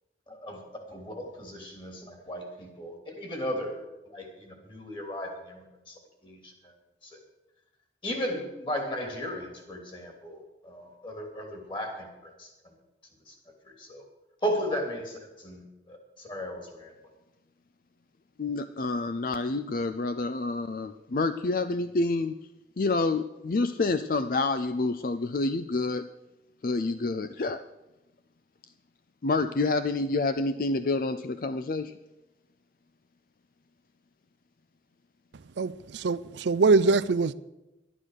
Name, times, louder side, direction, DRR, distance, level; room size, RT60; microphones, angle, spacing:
voice 1, 0.3-6.7 7.0-7.2 8.0-12.5 13.3-13.4 13.6-14.0 14.4-16.9, equal, 25° left, 2.9 m, -36 dB
voice 2, 18.4-22.3 22.8-26.1 26.6-27.6 29.2-31.9, left 3 dB, 50° left, 0.4 m, -28 dB
voice 3, 35.6-37.3, right 3 dB, 75° right, 0.5 m, -23 dB
12.0 x 11.0 x 6.5 m
head